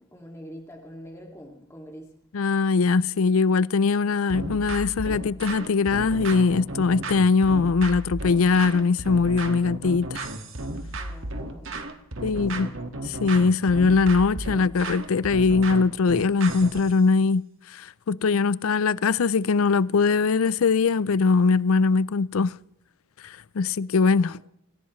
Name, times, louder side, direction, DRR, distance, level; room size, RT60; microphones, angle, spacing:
voice 1, 0.0-2.1 10.9-11.9 12.2-12.7 24.2-24.4, equal, 15° left, 2.3 m, -44 dB
voice 2, 2.3-10.3 12.2-12.7 13.0-17.4 17.7-22.5 23.6-24.4, left 4 dB, 75° left, 0.5 m, -21 dB
sound 1, 4.3-16.9, right 2 dB, 65° right, 1.8 m, -34 dB
26.5 x 16.0 x 3.2 m
head